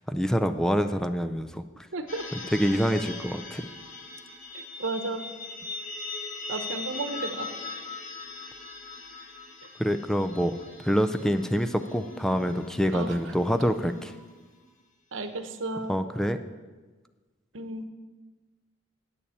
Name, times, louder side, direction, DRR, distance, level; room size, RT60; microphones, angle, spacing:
voice 1, 0.1-1.6 2.5-3.7 9.8-10.5 10.8-14.1 15.9-16.4, equal, 5° left, 9 dB, 0.4 m, -26 dB
voice 2, 1.9-2.3 4.5-5.2 6.5-7.5 12.9-13.3 15.1-16.0 17.5-17.9, right 2 dB, 80° right, 8 dB, 1.0 m, -33 dB
sound 1, 2.1-14.6, left 3 dB, 45° left, 1.5 m, -40 dB
8.7 x 6.9 x 8.4 m, 1.3 s
head